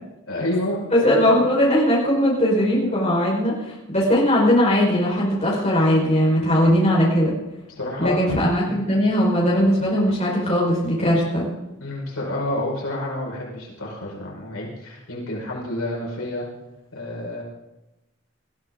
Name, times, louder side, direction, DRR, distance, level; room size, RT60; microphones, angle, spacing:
voice 1, 0.3-1.3 7.7-8.2 8.6-8.8 11.8-16.5 16.9-17.4, left 1 dB, 80° left, -3 dB, 5.5 m, -29 dB
voice 2, 0.9-7.4 8.0-11.5, equal, 30° left, -4 dB, 5.0 m, -19 dB
20.5 x 15.0 x 3.9 m, 0.98 s
head